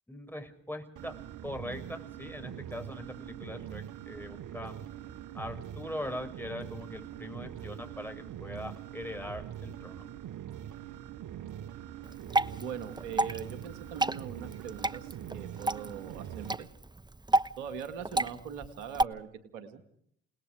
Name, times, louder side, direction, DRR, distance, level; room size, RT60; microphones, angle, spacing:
voice 1, 0.1-1.1 1.4-4.7 5.3-10.0, left 1 dB, 5° left, 6 dB, 6.1 m, -41 dB
sound 1, 1.0-16.6, right 10 dB, 65° right, 1.1 m, -43 dB
Water / Drip, 12.0-19.0, right 2 dB, 15° right, 0.9 m, -32 dB
voice 2, 12.6-16.7 17.6-19.8, right 7 dB, 85° right, 10 dB, 2.1 m, -41 dB
29.0 x 19.5 x 4.9 m, 0.67 s
hypercardioid pair, 50°, 32 cm